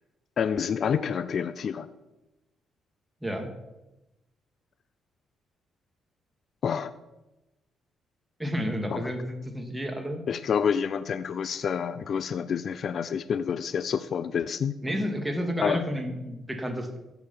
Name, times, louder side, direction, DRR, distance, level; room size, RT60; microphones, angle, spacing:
voice 1, 0.4-1.9 6.6-6.9 8.9-9.0 10.3-14.7 15.6-15.8, left 7 dB, 55° left, 14 dB, 0.6 m, -28 dB
voice 2, 8.4-10.2 14.8-17.0, equal, 10° right, 4 dB, 2.4 m, -31 dB
14.0 x 8.3 x 5.7 m, 0.99 s
cardioid pair, 90°, 0 cm